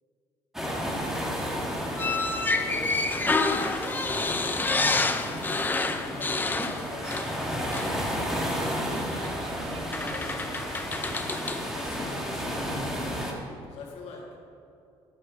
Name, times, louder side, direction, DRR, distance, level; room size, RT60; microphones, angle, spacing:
sound 1, 0.5-13.3, equal, 5° right, 1.8 m, -32 dB
voice 1, 2.0-5.4 6.0-9.1 9.5-9.8 10.1-11.2 11.7-14.2, left 3 dB, 75° left, -2 dB, 2.0 m, -45 dB
sound 2, 2.0-7.4 7.7-8.0 9.2-9.3 9.9-11.7, left 3 dB, 20° left, 0.7 m, -28 dB
sound 3, 7.0-12.7, right 6 dB, 55° right, 1.2 m, -52 dB
12.0 x 8.9 x 5.1 m, 2.6 s
cardioid pair, 120°, 11 cm